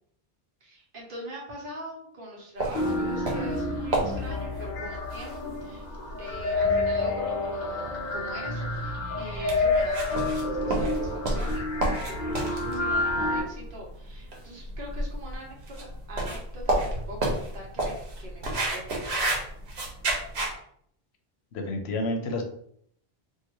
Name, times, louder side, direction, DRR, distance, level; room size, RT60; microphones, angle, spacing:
voice 1, 0.6-5.9 6.2-16.8 17.1-18.9, equal, 60° right, -2 dB, 1.0 m, -42 dB
sound 1, 2.6-20.5, right 1 dB, 85° right, 1.0 m, -32 dB
sound 2, 2.7-13.4, left 2 dB, 50° left, 0.8 m, -29 dB
voice 2, 21.5-22.4, left 2 dB, 90° left, 4 dB, 0.9 m, -29 dB
2.8 x 2.4 x 3.0 m, 0.66 s
omnidirectional pair, 1.1 m